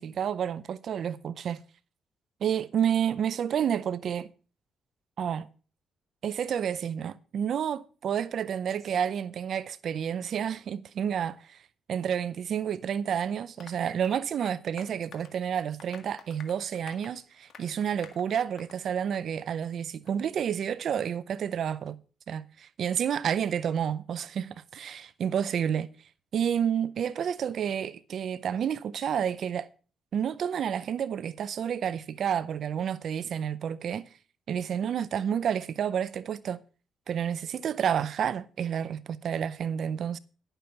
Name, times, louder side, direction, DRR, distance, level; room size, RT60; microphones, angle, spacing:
voice 1, 0.0-1.6 2.4-4.3 5.2-5.5 6.2-11.6 11.9-22.0 22.3-25.9 26.3-29.7 30.1-34.1 34.5-36.6 37.1-40.2, right 8 dB, 60° right, 0.5 m, -30 dB
Applause, 13.6-18.8 19.1-19.3 19.6-19.7 20.1-20.2, left 7 dB, 65° left, 1.7 m, -52 dB
11.0 x 6.8 x 5.7 m
cardioid pair, 90°, 0 cm